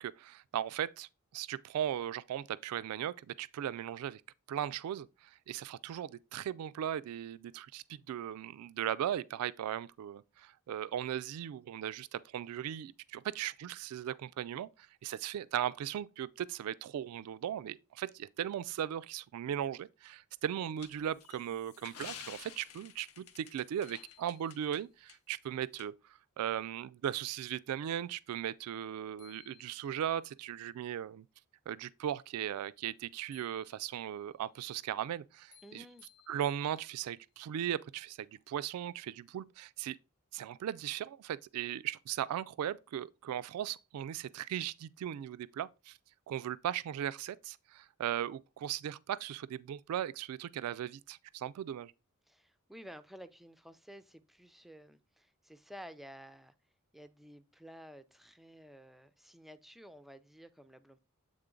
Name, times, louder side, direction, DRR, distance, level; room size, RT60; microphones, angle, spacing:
voice 1, 0.0-4.2 4.5-31.3 31.7-35.9 36.3-40.0 40.3-46.0 46.3-51.9, right 10 dB, 80° right, 0.3 m, -38 dB
sound 1, 20.8-24.8 25.1-25.2 25.8-25.9, left 8 dB, 75° left, 0.8 m, -50 dB
sound 2, 23.8-24.9 28.8-28.9 29.2-30.2 33.3-34.2 35.5-37.2, left 11 dB, 35° left, 0.7 m, -62 dB
voice 2, 35.6-36.1 52.3-56.5 56.9-61.0, equal, ahead, 0.4 m, -53 dB
8.0 x 3.7 x 3.7 m
head